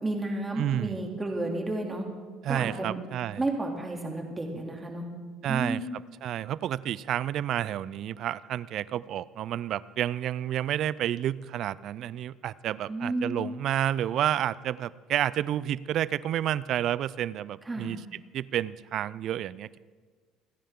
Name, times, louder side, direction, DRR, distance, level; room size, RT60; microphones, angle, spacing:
voice 1, 0.0-2.0 2.5-3.0 3.4-5.1 5.5-5.9 12.9-13.4 17.7-17.9, right 2 dB, 20° right, 1 dB, 2.7 m, -32 dB
voice 2, 0.6-1.0 2.4-3.4 5.4-5.8 6.2-18.0 18.3-19.8, right 11 dB, 60° right, 20 dB, 0.4 m, -30 dB
28.0 x 10.0 x 3.7 m, 1.5 s
supercardioid pair, 90°, 0 cm